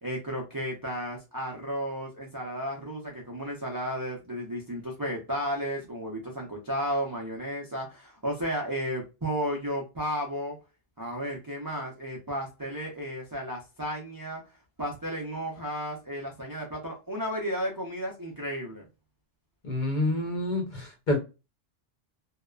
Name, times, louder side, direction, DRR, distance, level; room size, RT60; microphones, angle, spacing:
voice 1, 0.0-10.6 11.0-14.4 14.8-18.9, equal, 30° right, -2 dB, 0.4 m, -33 dB
voice 2, 19.6-21.2, left 1 dB, 45° left, 2 dB, 0.8 m, -28 dB
2.8 x 2.0 x 2.2 m, 0.28 s
omnidirectional pair, 1.3 m